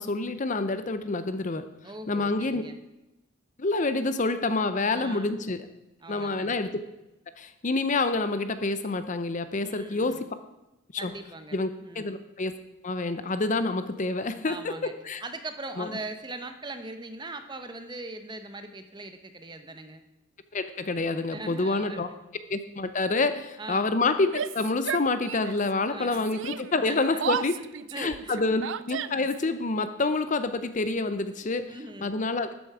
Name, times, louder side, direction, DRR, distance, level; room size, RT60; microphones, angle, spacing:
voice 1, 0.0-1.6 2.1-2.6 3.6-5.6 6.1-6.7 7.4-10.2 10.9-11.1 11.5-11.7 12.0-12.5 12.8-14.7 15.1-15.2 15.8-15.9 20.5-22.1 22.5-27.5 28.0-31.7 32.0-32.5, left 3 dB, 35° left, 11 dB, 0.6 m, -27 dB
voice 2, 1.8-2.8 4.9-5.3 6.0-6.6 9.6-10.2 11.0-12.1 14.4-14.9 15.2-20.0 21.3-22.2 23.6-23.9 25.8-26.3 26.8-27.4 27.8-28.5 31.4-32.1, right 2 dB, 20° right, 8 dB, 0.9 m, -40 dB
Yell, 24.2-25.7 26.0-29.4, right 8 dB, 60° right, 0.4 m, -34 dB
13.5 x 9.1 x 4.9 m, 0.96 s
head